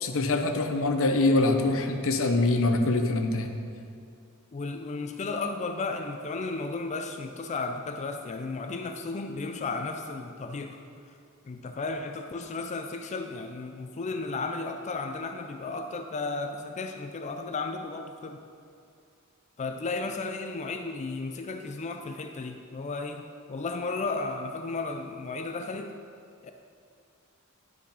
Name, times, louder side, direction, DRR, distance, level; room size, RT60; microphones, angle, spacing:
voice 1, 0.0-3.6, left 2 dB, 65° left, 5 dB, 0.7 m, -24 dB
voice 2, 4.5-10.8 11.5-18.4 19.6-26.0 26.4-26.5, left 3 dB, 30° left, 6 dB, 0.4 m, -34 dB
10.5 x 5.0 x 5.3 m, 2.4 s
head